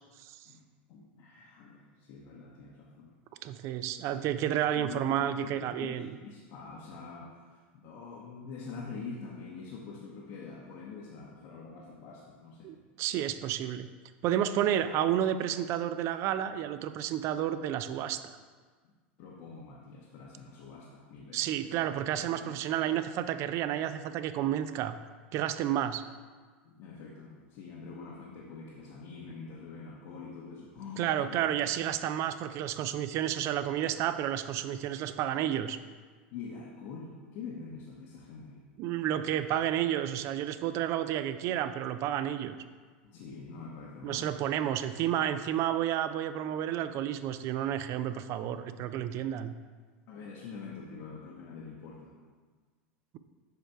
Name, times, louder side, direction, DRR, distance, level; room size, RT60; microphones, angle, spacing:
voice 1, 0.9-3.1 4.7-12.7 18.8-18.9 19.2-21.9 22.3-22.5 26.6-31.4 36.3-38.6 43.0-44.4 50.1-52.2, left 4 dB, 60° left, -3 dB, 0.9 m, -45 dB
voice 2, 3.4-6.1 12.6-13.9 14.2-18.2 21.3-25.0 25.3-26.0 31.0-35.8 38.8-42.6 44.0-49.5, right 11 dB, 50° right, 11 dB, 0.4 m, -31 dB
6.7 x 3.3 x 4.4 m, 1.5 s
hypercardioid pair, 100°, 6 cm